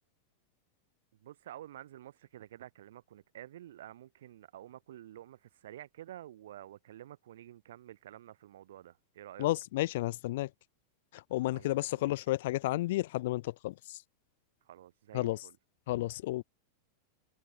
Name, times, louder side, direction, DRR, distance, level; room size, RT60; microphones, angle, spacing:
voice 1, 1.1-9.5 11.5-12.2 14.6-15.6, right 12 dB, 60° right, 0.9 m, -50 dB
voice 2, 9.4-10.5 11.1-14.0 15.1-15.4 15.9-16.4, left 17 dB, 55° left, 0.3 m, -32 dB
figure-of-eight pair, 90°, 0 cm